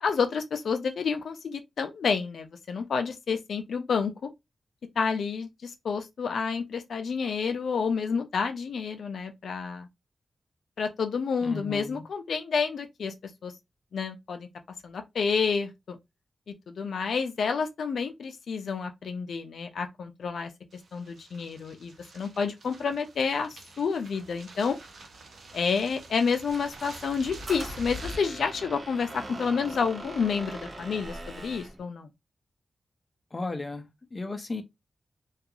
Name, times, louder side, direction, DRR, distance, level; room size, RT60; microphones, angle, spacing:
voice 1, 0.0-4.3 5.0-9.9 10.8-13.1 13.4-13.5 13.9-14.5 14.8-16.0 16.5-20.5 20.9-24.8 25.5-32.1, left 5 dB, 90° left, 0.4 m, -29 dB
voice 2, 11.4-12.0 33.3-34.6, left 2 dB, 30° left, 0.5 m, -35 dB
sound 1, 20.7-28.2, equal, 85° right, 0.6 m, -45 dB
Squeak, 26.5-31.8, right 2 dB, 45° right, 0.7 m, -42 dB
2.3 x 2.3 x 2.7 m
wide cardioid pair, 110°, 0 cm